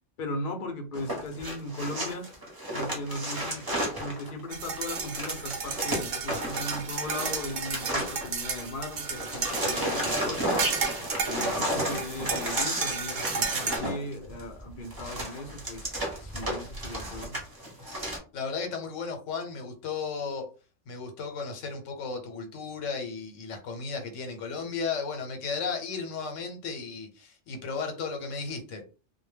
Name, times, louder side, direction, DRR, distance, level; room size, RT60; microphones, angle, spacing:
voice 1, 0.2-2.3 2.7-10.6 11.2-17.4, left 1 dB, 55° left, 4 dB, 0.6 m, -37 dB
sound 1, 0.9-8.7 8.9-18.2, right 1 dB, 20° right, 0.7 m, -33 dB
sound 2, 4.5-13.8, right 5 dB, 60° right, 0.5 m, -33 dB
voice 2, 18.3-20.5 20.9-28.8, left 5 dB, 85° left, 5 dB, 1.0 m, -34 dB
2.2 x 2.1 x 3.2 m, 0.34 s
omnidirectional pair, 1.3 m